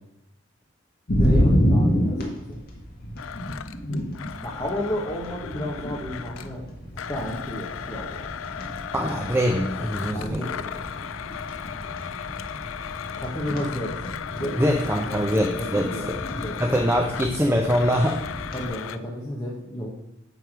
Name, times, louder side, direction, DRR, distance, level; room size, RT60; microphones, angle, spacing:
sound 1, 1.1-18.7, equal, 50° left, 1.5 m, -29 dB
voice 1, 1.2-2.6 4.4-6.6 7.1-8.4 10.1-10.9 13.2-13.9 14.3-15.2 15.5-16.5 18.5-19.9, left 1 dB, 20° left, -6 dB, 1.3 m, -32 dB
Domestic sounds home sounds, 3.2-6.6 7.0-19.0, left 8 dB, 75° left, 0.4 m, -36 dB
voice 2, 8.9-10.4 14.6-16.2 16.6-18.2, equal, 10° right, 1 dB, 0.7 m, -23 dB
9.1 x 3.6 x 6.1 m, 0.83 s
head